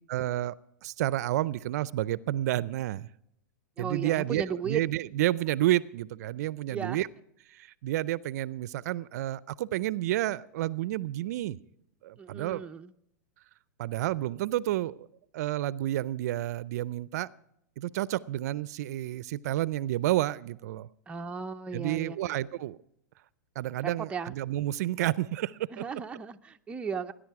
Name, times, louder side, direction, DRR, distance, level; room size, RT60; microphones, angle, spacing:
voice 1, 0.1-0.6 0.8-3.1 3.8-7.1 7.5-11.6 12.0-12.6 13.8-15.1 15.3-17.3 17.8-20.9 21.7-22.8 23.6-25.8, right 14 dB, 65° right, 0.5 m, -30 dB
voice 2, 3.8-4.8 6.7-7.0 12.2-12.9 21.1-22.4 23.8-24.3 25.7-27.1, right 5 dB, 10° right, 0.5 m, -36 dB
19.0 x 10.0 x 4.7 m
hypercardioid pair, 125°, 10 cm